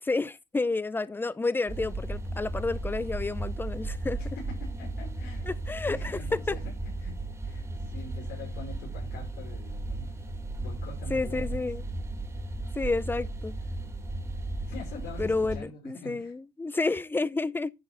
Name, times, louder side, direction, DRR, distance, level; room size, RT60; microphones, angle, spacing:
voice 1, 0.0-4.2 5.5-6.5 11.1-11.8 12.7-13.5 15.2-17.7, left 3 dB, 10° left, 0.5 m, -30 dB
sound 1, 1.7-15.6, right 2 dB, 15° right, 2.1 m, -35 dB
voice 2, 4.2-5.5 5.8-6.6 7.0-7.1 7.4-10.2 10.6-11.6 14.7-16.3, left 2 dB, 75° left, 5.4 m, -44 dB
11.0 x 4.6 x 4.4 m
cardioid pair, 110°, 17 cm